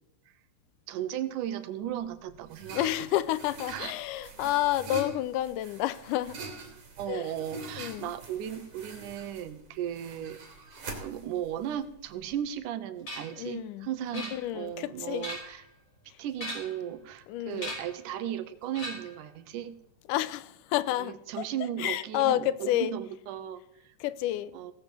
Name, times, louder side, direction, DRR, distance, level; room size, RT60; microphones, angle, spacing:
voice 1, 0.9-2.9 3.7-3.9 4.4-4.5 7.0-10.4 11.0-15.6 16.2-19.8 21.0-23.9 24.5-24.7, right 10 dB, 80° right, 2.4 m, -36 dB
sound 1, 1.9-12.5, right 3 dB, 50° right, 3.6 m, -44 dB
voice 2, 2.7-6.4 7.1-7.3 7.8-8.1 13.4-13.9 14.1-15.3 17.3-17.7 20.1-21.5 21.8-22.9 24.0-24.5, left 14 dB, 80° left, 2.2 m, -30 dB
sound 2, 13.1-13.4 14.1-14.7 15.1-15.7 16.3-16.9 17.6-18.0 18.7-19.2, equal, 40° left, 6.3 m, -39 dB
17.0 x 7.0 x 7.6 m
omnidirectional pair, 3.7 m